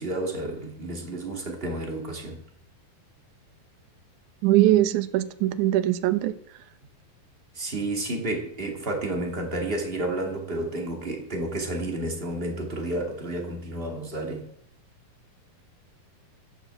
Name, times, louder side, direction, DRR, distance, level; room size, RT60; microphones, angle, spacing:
voice 1, 0.0-2.4 7.5-14.5, right 1 dB, 20° right, 1.9 m, -31 dB
voice 2, 4.4-6.3, right 14 dB, 75° right, 2.0 m, -21 dB
10.5 x 8.4 x 7.7 m
omnidirectional pair, 4.2 m